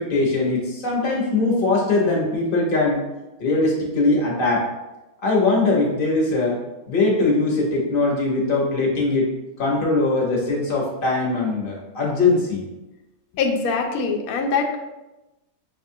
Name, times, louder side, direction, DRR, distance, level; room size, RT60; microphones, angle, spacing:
voice 1, 0.0-3.0 3.4-4.7 5.2-6.6 6.9-9.3 9.6-12.6, left 3 dB, 40° left, -2 dB, 0.9 m, -21 dB
voice 2, 13.4-14.8, left 4 dB, 70° left, 2 dB, 0.9 m, -23 dB
6.5 x 2.4 x 2.7 m, 1.0 s
omnidirectional pair, 1.7 m